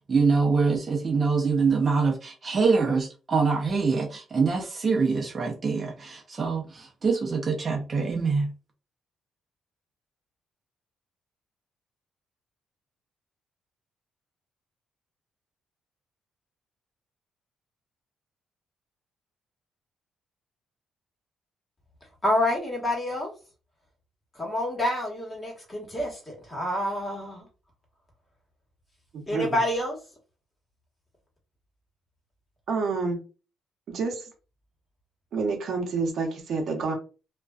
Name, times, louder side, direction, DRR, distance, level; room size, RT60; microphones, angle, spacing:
voice 1, 0.1-6.6 7.0-8.5, right 4 dB, 35° right, 0.5 m, -24 dB
voice 2, 22.2-23.3 24.4-27.4 29.3-30.0, left 1 dB, 25° left, 1.2 m, -28 dB
voice 3, 29.1-29.6 32.7-33.2 33.9-34.3 35.3-36.9, right 4 dB, 65° right, 0.7 m, -28 dB
2.4 x 2.2 x 2.3 m
cardioid pair, 90°, 0 cm